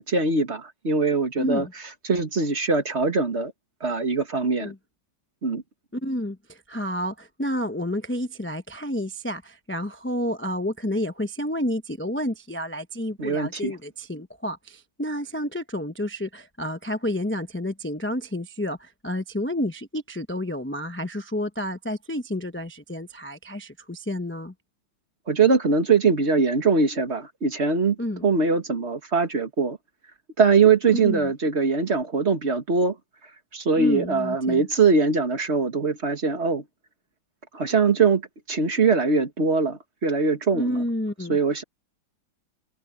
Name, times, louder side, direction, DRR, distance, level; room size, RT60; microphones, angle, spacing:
voice 1, 0.0-3.5 3.8-4.7 5.4-5.6 13.2-13.8 25.3-29.8 30.4-33.0 33.5-36.6 37.5-40.9 41.3-41.6, right 4 dB, 35° right, 1.9 m, -22 dB
voice 2, 1.4-1.7 4.6-4.8 5.9-24.5 28.0-28.3 30.9-31.3 33.8-34.6 40.5-41.4, left 1 dB, 15° left, 0.4 m, -30 dB
omnidirectional pair, 2.1 m